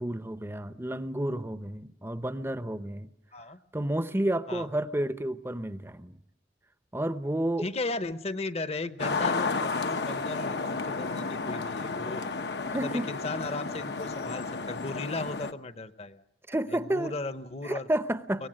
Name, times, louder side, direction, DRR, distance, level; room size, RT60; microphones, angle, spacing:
voice 1, 0.0-3.1 3.7-6.2 6.9-7.7 12.7-13.1 16.5-17.1 17.6-18.5, right 1 dB, 15° right, 13 dB, 0.7 m, -31 dB
voice 2, 7.6-12.2 12.7-16.2 16.7-17.9 18.4-18.5, left 2 dB, 35° left, 13 dB, 0.9 m, -36 dB
sound 1, 9.0-15.5, left 4 dB, 70° left, 1.0 m, -32 dB
23.5 x 18.5 x 7.6 m, 0.86 s
head